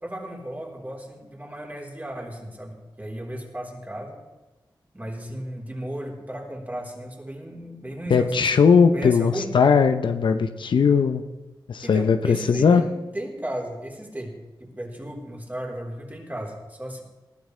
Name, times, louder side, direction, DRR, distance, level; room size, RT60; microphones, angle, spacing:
voice 1, 0.0-4.2 4.9-8.6 8.9-9.5 11.8-17.0, right 1 dB, 20° right, -1 dB, 4.0 m, -35 dB
voice 2, 8.1-11.2 11.7-12.8, left 6 dB, 80° left, 8 dB, 0.7 m, -19 dB
20.0 x 13.0 x 3.3 m, 1.1 s
cardioid pair, 60°, 8 cm